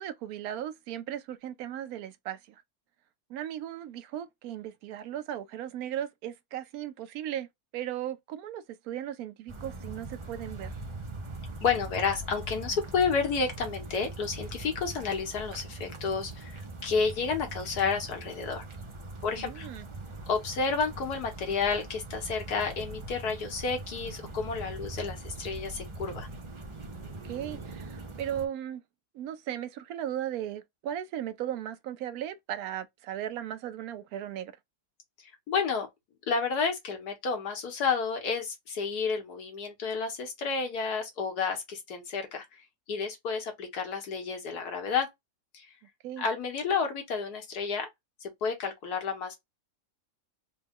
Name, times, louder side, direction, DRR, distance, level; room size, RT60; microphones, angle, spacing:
voice 1, 0.0-2.6 3.3-7.5 7.7-10.8 19.4-19.9 27.2-28.8 29.1-34.5 46.0-46.2, right 11 dB, 70° right, 1.0 m, -37 dB
sound 1, 9.5-28.4, right 2 dB, 40° right, 0.4 m, -42 dB
voice 2, 11.6-18.6 19.2-19.7 20.3-26.3 35.2-35.9 36.3-45.1 45.5-45.7 46.2-47.9 48.2-49.4, left 5 dB, 75° left, 1.7 m, -31 dB
4.0 x 2.2 x 3.5 m
omnidirectional pair, 1.7 m